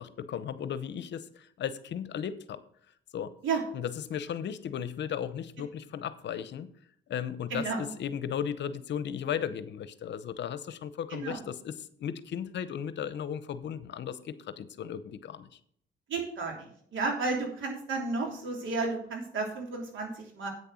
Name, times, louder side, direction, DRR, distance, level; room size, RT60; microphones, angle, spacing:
voice 1, 0.0-2.6 3.1-3.3 3.7-6.7 7.1-15.5, left 8 dB, 65° left, 14 dB, 0.8 m, -36 dB
voice 2, 7.5-7.9 11.1-11.4 16.1-20.5, right 4 dB, 75° right, 1 dB, 3.2 m, -32 dB
8.7 x 6.7 x 6.2 m, 0.63 s
cardioid pair, 90°, 20 cm